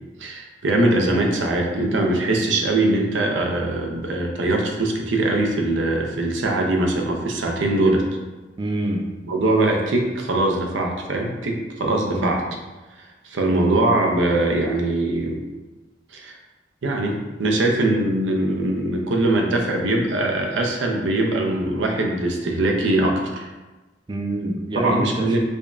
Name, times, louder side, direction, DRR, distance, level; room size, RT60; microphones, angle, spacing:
voice 1, 0.2-8.0 9.3-12.4 13.2-15.4 16.1-16.4 16.8-23.5 24.7-25.4, right 2 dB, 85° right, 1 dB, 0.6 m, -22 dB
voice 2, 8.6-9.0 12.1-12.4 24.1-25.4, right 1 dB, 25° right, 0 dB, 0.4 m, -26 dB
4.9 x 2.5 x 2.3 m, 1.2 s
head